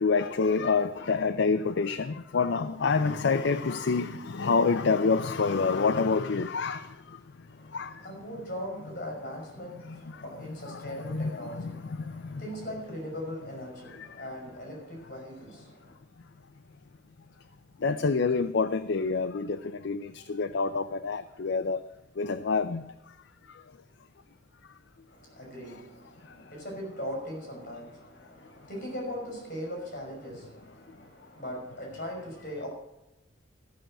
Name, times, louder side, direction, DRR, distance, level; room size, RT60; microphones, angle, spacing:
voice 1, 0.0-6.9 7.7-7.9 10.7-11.8 12.3-12.4 14.0-14.1 17.8-21.8 22.2-22.8, left 4 dB, 65° left, 0.5 m, -27 dB
voice 2, 7.5-16.0 25.1-32.7, equal, 45° left, 5.5 m, -40 dB
14.0 x 6.3 x 7.8 m
head